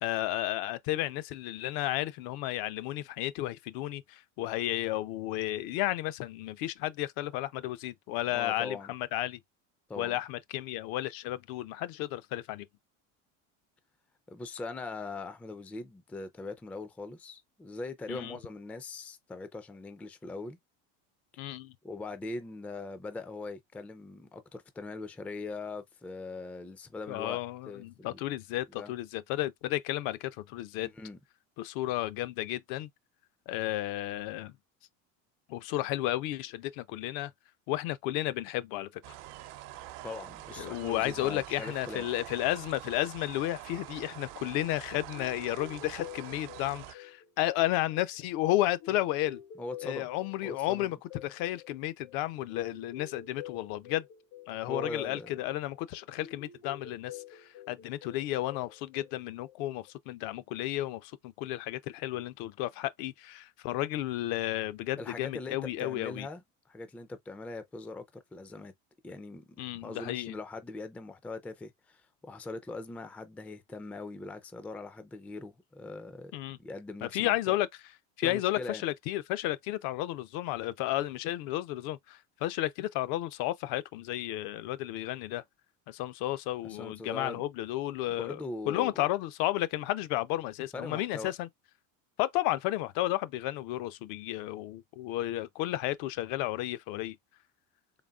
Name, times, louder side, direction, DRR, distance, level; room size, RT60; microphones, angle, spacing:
voice 1, 0.0-9.4 10.0-12.7 18.1-18.4 21.4-21.7 27.1-30.9 31.6-32.9 33.5-34.5 35.5-37.3 37.7-39.0 40.6-49.4 49.8-51.0 51.2-54.1 54.5-66.3 69.6-70.3 76.3-76.6 77.0-77.7 78.2-85.4 85.9-88.4 88.7-91.5 92.2-97.2, left 15 dB, 70° left, 0.6 m, -33 dB
voice 2, 8.3-8.9 9.9-10.2 14.3-20.6 21.8-27.4 27.7-28.2 28.8-28.9 30.8-31.2 40.0-42.0 49.6-50.1 50.4-50.9 54.7-55.4 65.0-68.7 69.0-69.5 69.8-76.3 76.6-77.5 78.2-78.8 86.6-87.4 88.1-89.1 90.7-91.3, left 3 dB, 5° left, 0.3 m, -41 dB
sound 1, 39.0-46.9, right 14 dB, 65° right, 0.7 m, -45 dB
sound 2, 45.1-59.9, left 10 dB, 85° left, 1.4 m, -50 dB
4.0 x 3.5 x 2.3 m
supercardioid pair, 120°, 38 cm